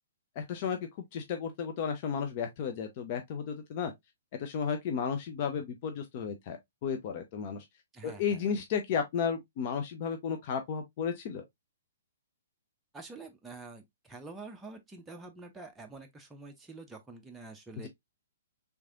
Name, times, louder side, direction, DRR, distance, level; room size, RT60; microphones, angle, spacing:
voice 1, 0.4-0.8 1.1-3.9 4.4-7.6 8.0-11.4 17.8-17.9, left 6 dB, 45° left, 0.6 m, -33 dB
voice 2, 7.9-8.5 12.9-17.9, right 3 dB, 10° right, 0.6 m, -47 dB
3.4 x 3.2 x 2.4 m
figure-of-eight pair, 120°, 0 cm